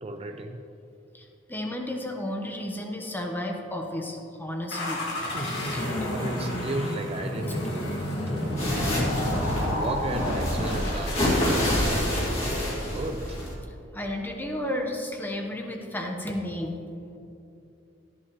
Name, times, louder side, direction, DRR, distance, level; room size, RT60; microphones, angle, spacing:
voice 1, 0.0-0.6 5.3-7.9 8.3-9.3 9.6-13.4, right 2 dB, 30° right, 5 dB, 0.4 m, -35 dB
voice 2, 1.1-5.3 5.7-6.1 13.9-16.7, left 1 dB, 10° left, 2 dB, 1.0 m, -33 dB
sound 1, 4.7-12.3, left 1 dB, 60° left, 2.1 m, -30 dB
sound 2, 8.4-12.6, left 4 dB, 10° right, 1.8 m, -42 dB
sound 3, 8.6-13.5, left 1 dB, 30° left, 2.3 m, -27 dB
13.5 x 11.0 x 3.1 m, 2.8 s
head